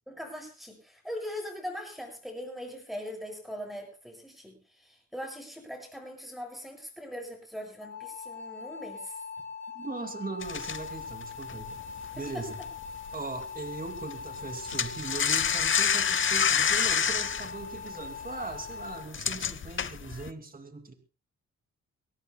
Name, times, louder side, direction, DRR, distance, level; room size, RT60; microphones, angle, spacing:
voice 1, 0.1-9.2 12.1-12.4, equal, ahead, 2 dB, 7.5 m, -41 dB
sound 1, 7.8-19.0, left 5 dB, 60° left, 3.9 m, -42 dB
voice 2, 9.7-11.8 12.1-12.5 13.1-20.9, right 3 dB, 30° right, 5 dB, 2.7 m, -39 dB
sound 2, 10.4-13.1 13.4-13.7 14.0-20.3, left 7 dB, 40° left, 0.7 m, -28 dB
24.0 x 17.5 x 2.2 m, 0.36 s
cardioid pair, 100°, 30 cm